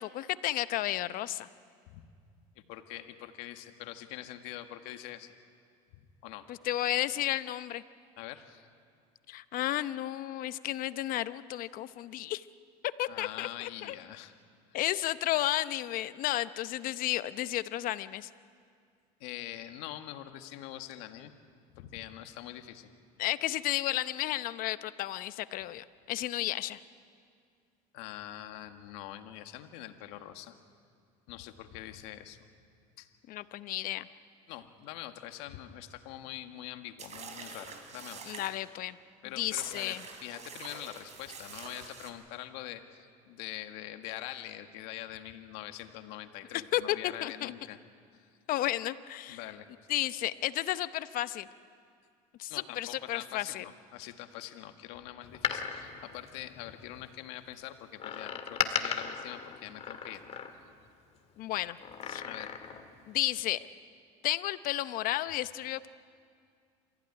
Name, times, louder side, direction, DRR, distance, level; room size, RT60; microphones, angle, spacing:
voice 1, 0.0-1.5 6.5-7.8 9.3-12.4 13.0-13.9 14.7-18.3 23.2-26.8 33.3-34.1 38.3-39.0 39.4-40.0 46.7-47.5 48.5-49.4 49.9-51.5 52.4-53.6 61.4-61.8 62.1-62.2 63.1-63.6 64.2-65.9, left 14 dB, 55° left, 13 dB, 0.9 m, -32 dB
voice 2, 2.5-5.3 5.9-6.5 8.2-8.7 13.1-14.3 19.2-21.3 21.7-22.9 27.9-30.5 31.3-32.4 33.0-33.1 34.5-38.3 39.2-47.8 48.1-48.4 49.3-49.7 52.5-60.2 62.2-62.5, left 13 dB, 75° left, 7 dB, 1.7 m, -44 dB
sound 1, 37.0-38.6 39.4-42.1, right 5 dB, 40° right, 3.7 m, -46 dB
Door, 55.2-57.0 58.0-60.9 61.8-62.9 63.2-63.3, left 7 dB, 35° left, 1.9 m, -36 dB
27.5 x 15.0 x 9.7 m, 2.2 s
supercardioid pair, 110°, 17 cm